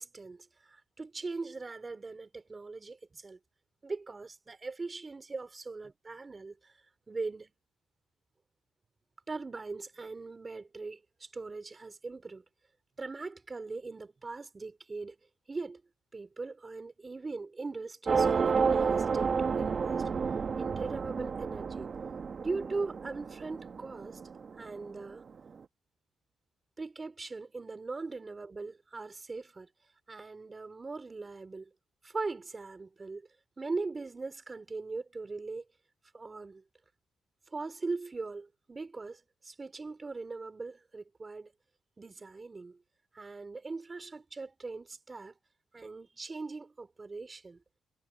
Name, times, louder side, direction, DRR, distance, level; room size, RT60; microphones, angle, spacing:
voice 1, 0.0-3.4 3.8-6.8 7.1-7.5 9.3-12.4 13.0-15.2 15.5-15.8 16.1-20.0 20.6-21.9 22.4-24.2 24.6-25.2 26.8-29.7 30.1-31.7 32.0-33.3 33.6-35.6 36.1-36.6 37.5-41.5 42.0-42.8 43.1-45.4 45.7-47.6, right 3 dB, 25° right, 4.0 m, -40 dB
sound 1, 18.1-24.9, right 5 dB, 45° right, 1.2 m, -30 dB
cardioid pair, 90°, 0 cm